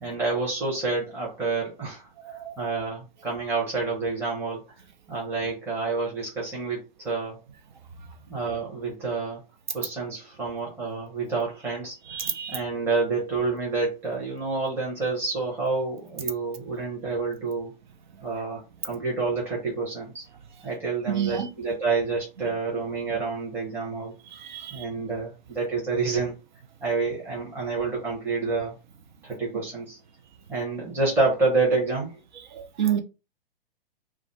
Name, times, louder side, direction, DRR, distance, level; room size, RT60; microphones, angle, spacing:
voice 1, 0.0-4.6 5.1-7.4 8.3-9.4 9.7-12.2 12.5-17.7 18.2-20.2 20.6-24.1 24.7-26.3 26.8-28.7 29.2-30.0 30.5-32.2, right 3 dB, 10° right, 0.8 m, -28 dB
voice 2, 2.2-2.5 12.1-12.6 18.1-18.2 21.1-21.5 22.4-22.5 24.3-24.9 32.5-33.0, right 9 dB, 55° right, 0.6 m, -29 dB
2.4 x 2.0 x 3.1 m
figure-of-eight pair, 120°, 29 cm